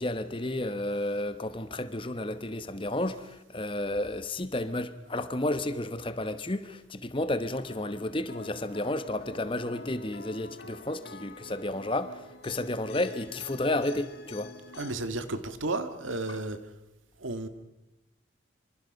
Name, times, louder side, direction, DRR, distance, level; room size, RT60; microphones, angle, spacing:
voice 1, 0.0-14.5, left 1 dB, 25° left, 1.1 m, -32 dB
sound 1, 7.6-14.9, left 3 dB, 55° left, 1.4 m, -47 dB
voice 2, 14.8-16.6 17.2-17.5, right 2 dB, 90° right, 1.8 m, -32 dB
26.0 x 26.0 x 5.3 m
head